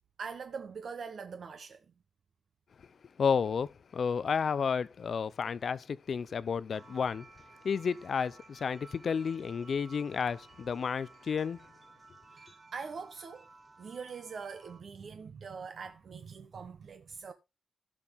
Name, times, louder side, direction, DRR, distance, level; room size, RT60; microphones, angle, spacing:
voice 1, 0.2-1.9 12.3-13.5 13.8-17.3, right 5 dB, 50° right, 1.0 m, -43 dB
voice 2, 3.2-7.3 7.6-11.6, left 6 dB, 45° left, 0.5 m, -31 dB
sound 1, 6.7-14.8, right 3 dB, 20° right, 2.5 m, -56 dB
16.5 x 6.0 x 3.6 m
wide cardioid pair, 175°, 0 cm